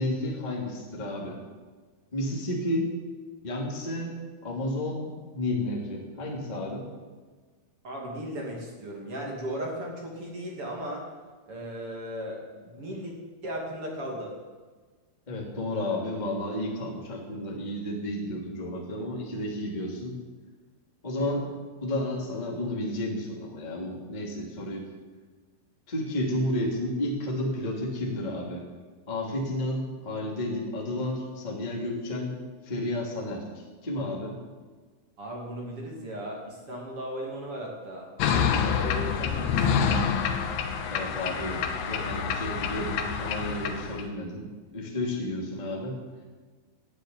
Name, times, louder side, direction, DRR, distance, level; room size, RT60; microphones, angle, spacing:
voice 1, 0.0-1.4 2.1-2.9 3.4-6.9 15.3-20.2 21.0-21.5 21.8-24.8 25.9-28.6 29.1-32.4 32.6-34.4 40.9-44.5 44.7-46.0, left 1 dB, 15° left, -3 dB, 2.0 m, -32 dB
voice 2, 7.8-11.0 11.5-13.1 13.4-14.3 21.2-21.4 35.2-38.1 38.6-39.9, right 1 dB, 35° right, -1 dB, 2.8 m, -36 dB
sound 1, 38.2-44.0, left 7 dB, 70° left, 2.4 m, -27 dB
13.0 x 10.0 x 9.4 m, 1.4 s
omnidirectional pair, 5.6 m